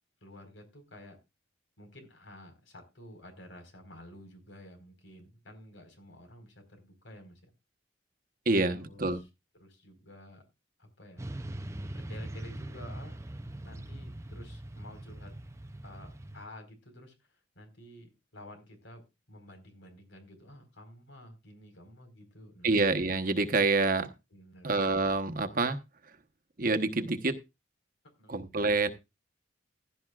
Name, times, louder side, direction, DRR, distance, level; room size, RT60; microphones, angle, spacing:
voice 1, 0.2-1.2 1.8-7.5 8.6-9.2 9.6-10.4 10.8-11.3 11.9-13.2 13.6-15.3 15.8-19.0 19.3-22.7 24.3-24.7 28.2-28.3, left 1 dB, 85° left, 5 dB, 4.5 m, -51 dB
voice 2, 8.5-9.2 22.6-24.1 24.6-25.8 26.6-27.4 28.3-28.9, right 3 dB, 50° right, 8 dB, 1.1 m, -27 dB
Motorcycle / Traffic noise roadway noise, 11.2-16.4, right 1 dB, 15° right, 0.5 m, -41 dB
16.0 x 11.5 x 2.4 m, 0.25 s
head